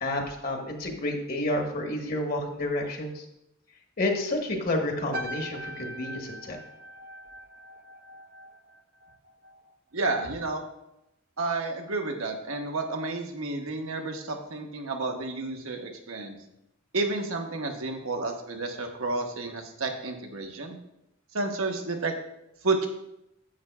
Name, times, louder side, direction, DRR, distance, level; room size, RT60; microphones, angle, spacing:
voice 1, 0.0-3.2 4.0-6.6, left 1 dB, 45° left, 2 dB, 1.1 m, -30 dB
sound 1, 5.1-9.7 10.0-10.4, right 1 dB, 45° right, 0.5 m, -41 dB
voice 2, 9.9-10.7 11.4-16.4 16.9-20.8 21.3-22.2 22.6-22.9, right 3 dB, 80° right, 3 dB, 1.2 m, -31 dB
10.5 x 8.2 x 2.3 m, 0.85 s
head